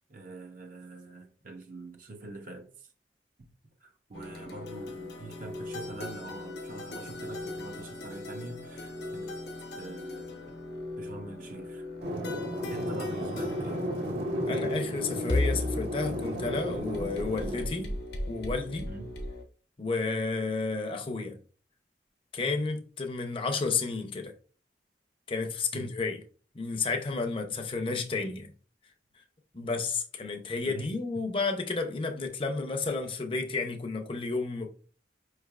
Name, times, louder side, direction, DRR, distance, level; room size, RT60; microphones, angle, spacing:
voice 1, 0.1-2.9 3.4-3.5 3.8-9.3 9.8-10.5 11.0-11.8 12.7-13.8 18.9-19.2 25.7-25.9 30.6-31.3, right 2 dB, 50° right, 0.7 m, -45 dB
sound 1, 4.1-19.4, left 2 dB, 75° left, 0.9 m, -37 dB
sound 2, 12.0-17.6, equal, 75° right, 1.6 m, -34 dB
voice 2, 14.4-18.0 18.3-18.9 19.8-21.4 22.3-24.3 25.3-26.2 26.5-28.5 29.5-34.7, left 4 dB, 30° left, 0.6 m, -31 dB
5.4 x 3.2 x 2.4 m
head